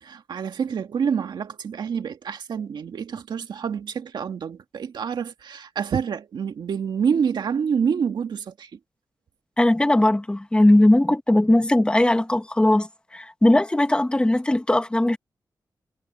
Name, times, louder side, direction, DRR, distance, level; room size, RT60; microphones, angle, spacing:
voice 1, 0.0-8.8, right 7 dB, 90° right, 2.0 m, -27 dB
voice 2, 9.6-12.9 13.1-15.2, left 1 dB, 15° left, 2.2 m, -19 dB
wide cardioid pair, 125°, 7 cm